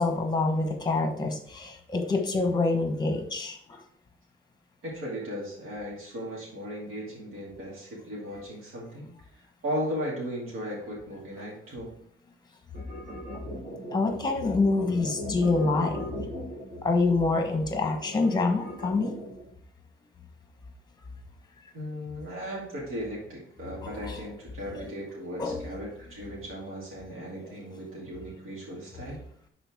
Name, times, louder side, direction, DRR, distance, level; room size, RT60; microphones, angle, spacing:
voice 1, 0.0-3.6 13.9-16.0 16.8-19.1 24.1-24.2 25.4-25.7, left 3 dB, 20° left, 4 dB, 1.1 m, -26 dB
voice 2, 4.8-9.1 9.3-11.9 21.7-29.2, equal, 80° right, -5 dB, 2.5 m, -36 dB
sound 1, 12.7-19.5, equal, 40° right, 3.1 m, -39 dB
11.0 x 4.3 x 3.6 m, 0.67 s
wide cardioid pair, 170°, 21 cm